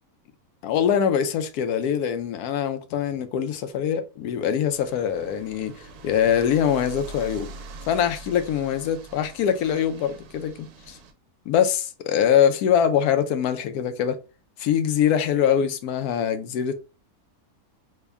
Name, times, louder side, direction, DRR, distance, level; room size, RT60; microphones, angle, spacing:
voice 1, 0.6-7.5 7.9-11.0 11.5-14.2 14.6-16.7, left 8 dB, 80° left, 1.1 m, -23 dB
sound 1, 4.7-11.1, right 3 dB, 85° right, 1.1 m, -43 dB
3.4 x 2.1 x 3.3 m
omnidirectional pair, 1.6 m